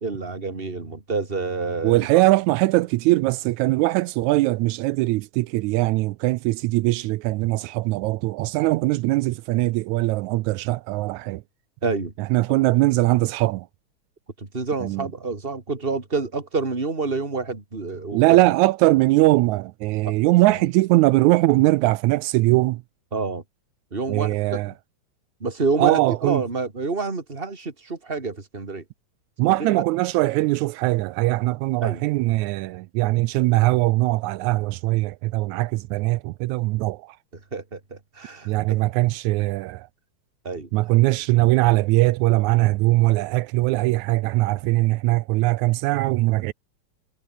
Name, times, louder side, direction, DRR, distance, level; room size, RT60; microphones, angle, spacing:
voice 1, 0.0-2.2 11.8-12.1 12.6-12.7 14.4-18.4 20.0-20.1 20.4-20.6 23.1-23.4 23.9-24.7 25.4-28.8 29.4-29.8 31.8-32.0 37.5-38.8 40.4-40.7 41.1-41.2, right 4 dB, 20° right, 3.0 m, -28 dB
voice 2, 1.8-11.4 12.3-13.7 14.8-15.1 18.1-22.8 24.1-24.7 25.8-26.4 29.4-37.2 38.5-39.9 40.7-46.5, right 19 dB, 85° right, 2.0 m, -21 dB
omnidirectional pair, 3.3 m